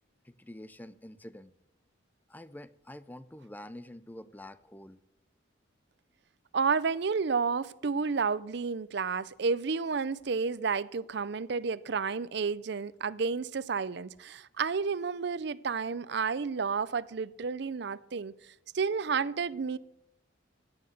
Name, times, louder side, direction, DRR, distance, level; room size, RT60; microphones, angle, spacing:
voice 1, 0.2-1.5 2.3-5.0, left 1 dB, 10° left, 0.5 m, -47 dB
voice 2, 6.5-18.3 18.7-19.8, right 5 dB, 60° right, 0.5 m, -31 dB
16.0 x 9.7 x 6.5 m
head